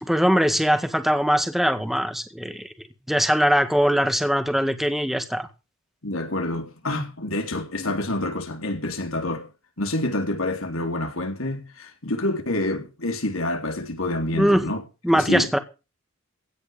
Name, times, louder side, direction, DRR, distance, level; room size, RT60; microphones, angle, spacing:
voice 1, 0.0-2.7 3.1-5.5 14.3-14.7 15.0-15.6, equal, ahead, 1.9 m, -21 dB
voice 2, 6.0-9.5 9.8-14.8 15.1-15.5, left 1 dB, 80° left, 4.0 m, -27 dB
17.0 x 10.0 x 5.3 m
head